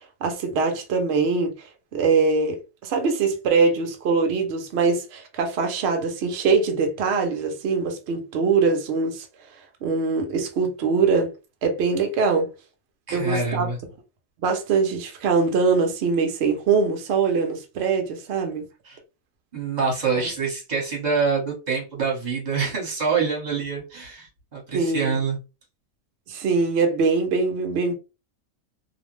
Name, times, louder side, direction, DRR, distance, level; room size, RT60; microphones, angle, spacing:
voice 1, 0.2-9.3 9.8-11.3 11.6-12.5 13.1-13.7 14.4-18.7 20.1-20.2 24.7-25.2 26.3-27.9, right 4 dB, 65° right, 0.6 m, -23 dB
voice 2, 13.1-13.8 18.8-19.0 19.5-25.4, right 5 dB, 35° right, 1.0 m, -26 dB
2.5 x 2.0 x 3.0 m
omnidirectional pair, 1.5 m